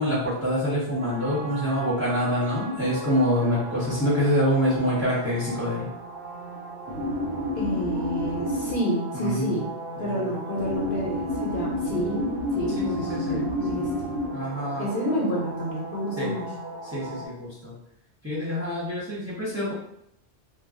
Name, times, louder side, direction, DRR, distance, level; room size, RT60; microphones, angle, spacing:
voice 1, 0.0-5.9 9.1-9.6 10.0-10.3 12.7-13.5 13.8-13.9 14.3-14.9 16.2-16.3 16.8-17.7 18.2-19.7, equal, 15° right, -10 dB, 0.7 m, -26 dB
sound 1, 1.0-17.3, equal, 60° right, 0.7 m, -33 dB
voice 2, 7.6-9.7 10.0-12.2 12.5-13.9 14.8-16.4, equal, 50° left, -5 dB, 0.9 m, -29 dB
2.3 x 2.0 x 3.6 m, 0.76 s
omnidirectional pair, 1.2 m